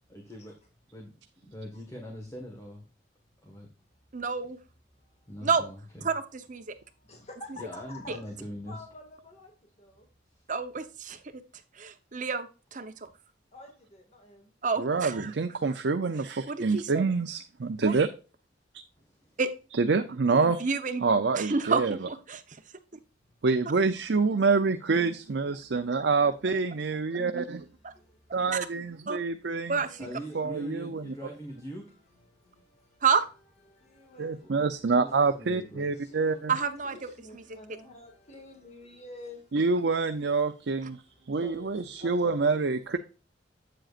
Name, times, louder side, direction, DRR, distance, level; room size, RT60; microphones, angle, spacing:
voice 1, 0.1-0.6 0.9-1.1 1.4-2.9 3.4-3.7 5.3-6.1 7.6-8.8 10.3-10.5 19.0-19.4 30.0-31.9 34.4-35.9, equal, 20° left, 0 dB, 1.6 m, -42 dB
voice 2, 4.1-4.6 5.4-5.6 6.0-6.2 6.5-6.7 8.1-8.2 10.5-11.4 11.8-13.1 14.6-15.3 16.5-17.1 17.8-17.9 19.4-19.5 20.4-21.0 21.3-22.4 27.8-27.9 28.5-28.6 29.1-29.2 29.7-30.1 33.0-33.2 36.5-37.4, right 5 dB, 45° right, 9 dB, 0.9 m, -29 dB
voice 3, 4.9-5.3 6.6-8.2 8.7-9.5 9.8-10.1 13.5-14.5 25.8-26.0 26.8-27.2 27.6-27.7 27.9-28.4 28.7-28.8 29.1-29.2 29.8-30.7 32.3-33.0 33.7-35.0 35.4-39.6 41.0-42.6 42.8-43.0, left 2 dB, 40° left, 2 dB, 2.0 m, -50 dB
voice 4, 14.8-18.1 19.7-20.7 21.0-22.0 23.4-27.7 28.3-29.8 30.4-31.1 34.2-36.5 39.5-41.0 41.3-43.0, right 4 dB, 70° right, 7 dB, 0.6 m, -27 dB
8.8 x 7.7 x 2.5 m, 0.34 s
head